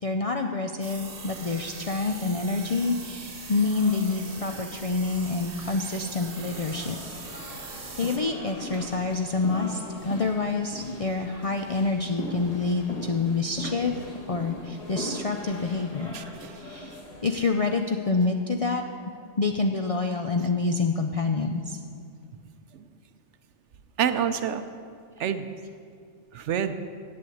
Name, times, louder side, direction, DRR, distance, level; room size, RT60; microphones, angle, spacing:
voice 1, 0.0-7.0 8.0-16.1 16.6-18.8 19.4-21.8, left 3 dB, 55° left, 4 dB, 0.4 m, -27 dB
sound 1, 0.8-8.2, right 4 dB, 50° right, 1.2 m, -41 dB
sound 2, 3.2-17.9, left 1 dB, 30° left, 1.3 m, -40 dB
voice 2, 16.1-16.6 22.7-22.8 24.0-24.6 25.2-25.5 26.3-26.8, right 8 dB, 75° right, 10 dB, 0.9 m, -28 dB
8.6 x 8.5 x 7.8 m, 2.3 s
omnidirectional pair, 1.3 m